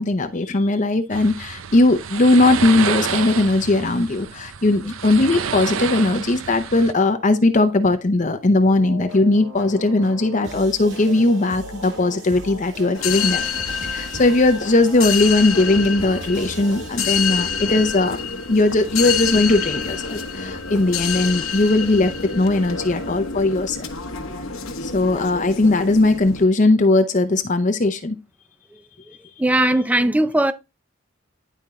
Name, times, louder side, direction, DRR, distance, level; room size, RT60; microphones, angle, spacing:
voice 1, 0.0-13.4 13.9-18.2 18.5-23.8 24.8-28.2, left 2 dB, 35° left, 0.6 m, -18 dB
sound 1, 1.1-6.9, right 7 dB, 80° right, 0.6 m, -29 dB
sound 2, 8.6-17.8, right 1 dB, 65° right, 5.7 m, -38 dB
sound 3, 12.9-26.4, left 6 dB, 85° left, 1.3 m, -27 dB
voice 2, 29.4-30.5, right 1 dB, 5° right, 0.5 m, -18 dB
10.5 x 4.5 x 3.6 m
head